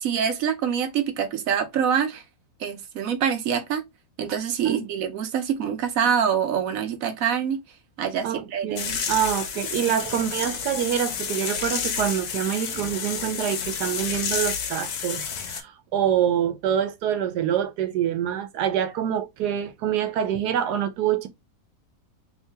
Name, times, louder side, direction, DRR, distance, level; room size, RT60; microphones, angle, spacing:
voice 1, 0.0-2.2 2.6-3.8 4.2-7.6 8.0-8.8, right 8 dB, 65° right, 1.0 m, -25 dB
voice 2, 8.2-21.3, right 9 dB, 90° right, 1.3 m, -26 dB
sound 1, 8.8-15.6, left 6 dB, 75° left, 1.2 m, -30 dB
3.2 x 2.7 x 3.3 m
omnidirectional pair, 1.7 m